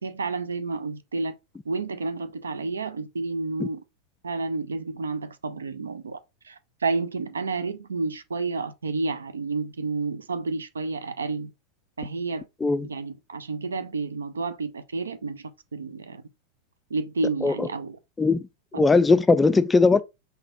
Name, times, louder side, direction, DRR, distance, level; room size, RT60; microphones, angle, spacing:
voice 1, 0.0-1.3 1.6-3.8 4.2-6.2 6.4-11.5 12.0-12.5 12.8-16.2 16.9-18.0 18.7-18.8, right 3 dB, 70° right, 0.5 m, -30 dB
voice 2, 18.8-20.0, left 3 dB, 10° left, 0.3 m, -19 dB
3.9 x 2.7 x 4.2 m
figure-of-eight pair, 90°, 0 cm